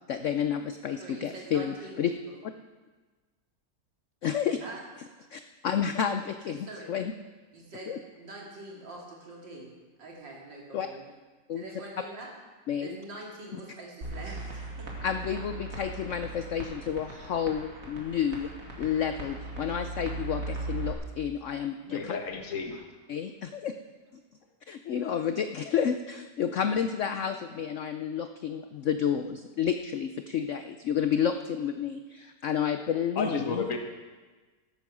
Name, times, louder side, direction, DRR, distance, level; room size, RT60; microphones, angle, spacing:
voice 1, 0.1-2.1 4.2-4.6 5.3-7.1 7.9-8.0 10.7-10.9 11.5-11.6 12.7-13.0 15.0-18.5 18.8-22.1 23.1-23.7 24.7-33.6, left 8 dB, 80° left, 8 dB, 0.6 m, -30 dB
voice 2, 1.0-2.4 4.6-4.8 6.5-6.9 7.5-11.0 11.5-12.3 12.8-14.9, right 2 dB, 80° right, -2 dB, 3.3 m, -44 dB
sound 1, 14.0-20.9, right 2 dB, 50° right, 2.6 m, -38 dB
voice 3, 21.8-22.8 33.1-33.8, left 4 dB, 50° left, 4 dB, 1.7 m, -32 dB
14.0 x 9.5 x 6.1 m, 1.3 s
omnidirectional pair, 1.9 m